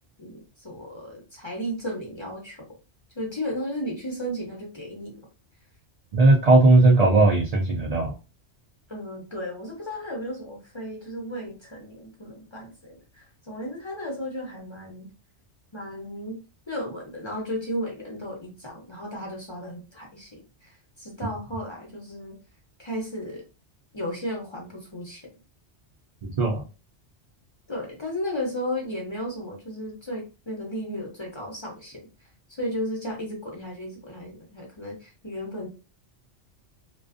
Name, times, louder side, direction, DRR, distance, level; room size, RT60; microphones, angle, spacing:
voice 1, 0.2-2.7 3.1-5.2 8.9-15.1 15.7-16.4 16.7-22.4 22.8-23.5 23.9-25.3 27.7-35.7, equal, 35° left, -2 dB, 0.5 m, -34 dB
voice 2, 6.1-8.1 26.2-26.6, right 2 dB, 75° right, 0 dB, 0.3 m, -18 dB
2.4 x 2.2 x 2.4 m, 0.31 s
omnidirectional pair, 1.2 m